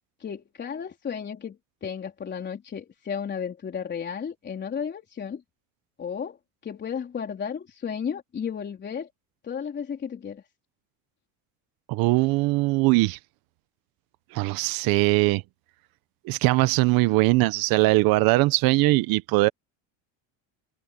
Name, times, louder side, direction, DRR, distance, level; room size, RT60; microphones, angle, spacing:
voice 1, 0.2-5.4 6.0-6.4 6.6-9.1 9.4-10.4, left 7 dB, 25° left, 4.1 m, -33 dB
voice 2, 11.9-13.2 14.3-15.4 16.2-19.5, right 21 dB, 60° right, 1.0 m, -21 dB
cardioid pair, 140°, 40 cm